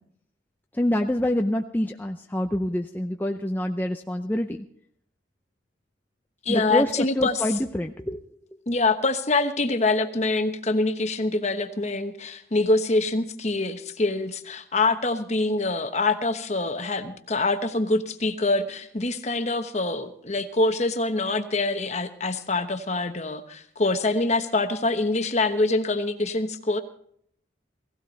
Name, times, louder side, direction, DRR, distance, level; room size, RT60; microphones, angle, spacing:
voice 1, 0.8-4.6 6.5-8.2, left 1 dB, 10° left, 4 dB, 0.5 m, -26 dB
voice 2, 6.4-7.5 8.7-26.8, left 2 dB, 35° left, 8 dB, 1.1 m, -25 dB
17.5 x 16.0 x 4.1 m, 0.65 s
head